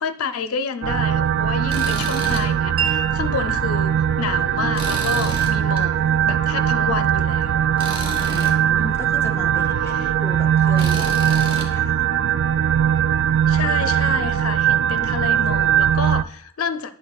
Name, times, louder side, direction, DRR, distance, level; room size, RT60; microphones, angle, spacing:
voice 1, 0.0-6.0 6.3-7.6 9.9-10.1 13.5-16.9, left 5 dB, 85° left, 0.6 m, -29 dB
sound 1, 0.8-16.2, right 9 dB, 60° right, 0.3 m, -20 dB
Tools, 1.7-2.5 2.9-3.0 4.7-5.8 7.8-8.5 10.8-11.7, right 1 dB, 25° right, 1.6 m, -32 dB
Wind chime, 2.8-10.4, right 6 dB, 85° right, 1.2 m, -36 dB
voice 2, 8.2-12.1, left 1 dB, 10° left, 0.6 m, -36 dB
10.0 x 7.5 x 2.3 m
head